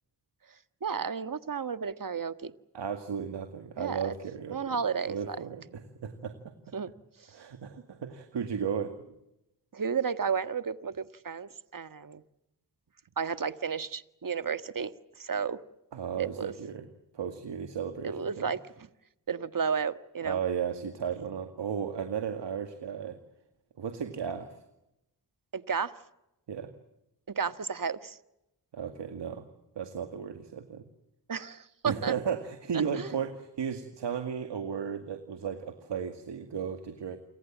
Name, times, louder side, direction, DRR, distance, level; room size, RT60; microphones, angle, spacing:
voice 1, 0.8-2.5 3.8-4.1 4.5-5.4 6.7-6.9 9.7-12.2 13.2-14.9 15.2-15.6 16.2-16.5 18.0-18.9 19.3-20.4 25.5-25.9 27.3-28.2 31.3-32.1 32.9-33.1, right 6 dB, 50° right, 11 dB, 1.7 m, -32 dB
voice 2, 2.7-4.6 5.0-6.5 7.3-8.9 15.9-16.9 17.1-18.5 20.2-23.2 23.8-24.5 26.5-26.7 28.7-29.5 29.8-30.8 31.8-37.2, right 7 dB, 90° right, 7 dB, 2.2 m, -34 dB
28.5 x 25.0 x 7.4 m, 0.88 s
cardioid pair, 50°, 41 cm